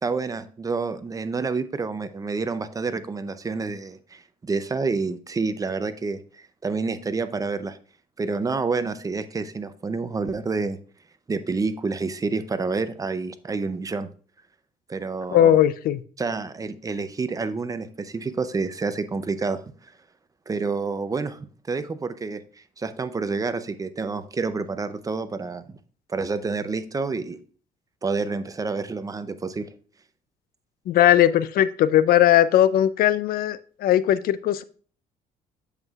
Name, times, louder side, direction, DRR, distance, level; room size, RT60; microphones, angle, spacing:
voice 1, 0.0-7.8 8.2-10.8 11.3-14.1 14.9-15.6 16.2-19.9 20.5-25.8 26.1-27.4 28.0-29.7, right 4 dB, 20° right, 12 dB, 0.5 m, -28 dB
voice 2, 15.3-16.0 30.9-34.6, left 11 dB, 65° left, 15 dB, 0.5 m, -19 dB
8.0 x 7.2 x 2.4 m, 0.42 s
cardioid pair, 125°, 16 cm